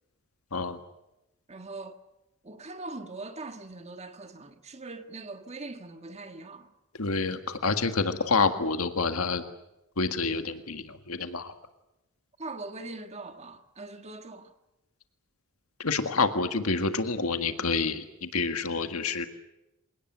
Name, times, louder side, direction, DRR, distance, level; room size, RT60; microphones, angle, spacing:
voice 1, 1.5-2.0 2.4-6.7 12.4-14.5, right 3 dB, 30° right, 1.6 m, -41 dB
voice 2, 7.0-9.4 10.0-11.5 15.8-19.3, left 4 dB, 90° left, 1.8 m, -28 dB
27.5 x 18.5 x 9.2 m
head